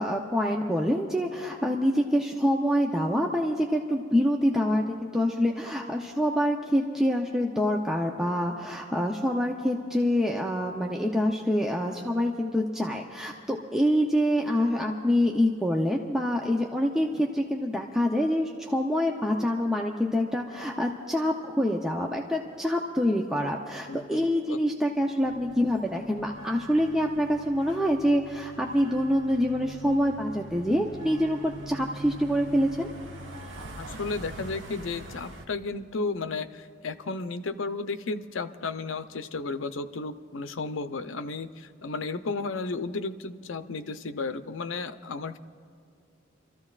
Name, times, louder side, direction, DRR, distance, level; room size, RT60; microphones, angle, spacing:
voice 1, 0.0-32.9, equal, 5° right, 0 dB, 0.6 m, -26 dB
voice 2, 23.9-24.6 33.7-45.4, left 3 dB, 90° left, 9 dB, 0.6 m, -33 dB
sound 1, 25.2-35.4, right 1 dB, 70° right, 1.2 m, -43 dB
29.0 x 14.0 x 2.4 m, 2.4 s
head